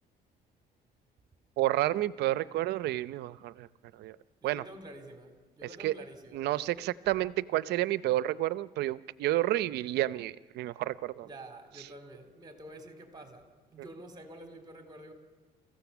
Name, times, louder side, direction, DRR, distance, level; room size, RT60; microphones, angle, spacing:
voice 1, 1.6-3.7 4.0-4.2 4.4-4.6 5.8-5.9 6.3-11.3, right 15 dB, 75° right, 0.7 m, -30 dB
voice 2, 4.4-6.9 11.2-15.1, right 1 dB, 25° right, 3.7 m, -49 dB
29.0 x 15.5 x 7.1 m
cardioid pair, 110°, 17 cm